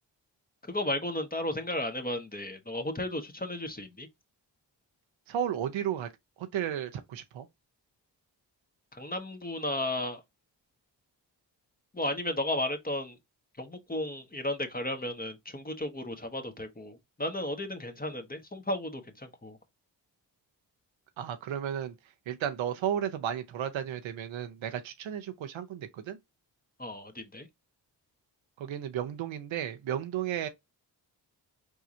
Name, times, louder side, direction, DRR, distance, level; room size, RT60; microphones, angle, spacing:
voice 1, 0.7-4.1 8.9-10.2 11.9-13.2 13.6-19.6 26.8-27.5, left 1 dB, 20° left, 1.4 m, -34 dB
voice 2, 5.3-6.1 6.4-7.5 21.2-22.0 22.3-26.2 28.6-30.5, right 10 dB, 85° right, 0.8 m, -33 dB
4.7 x 3.4 x 2.7 m
cardioid pair, 55°, 45 cm